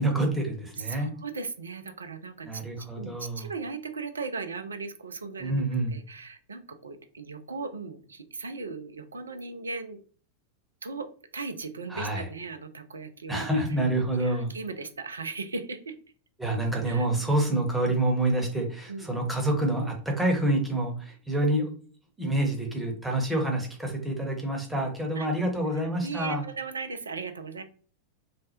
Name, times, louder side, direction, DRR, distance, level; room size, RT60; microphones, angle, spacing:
voice 1, 0.0-1.1 2.4-3.5 5.4-6.0 11.9-12.3 13.3-14.5 16.4-21.7 22.2-26.4, right 1 dB, 5° right, 1 dB, 0.9 m, -27 dB
voice 2, 0.8-5.6 5.9-10.0 10.8-11.1 11.3-13.5 14.2-16.0 16.9-17.3 18.9-19.1 25.2-25.3 26.0-27.6, right 4 dB, 75° right, 9 dB, 0.4 m, -37 dB
3.2 x 2.1 x 2.8 m, 0.43 s
figure-of-eight pair, 90°, 0 cm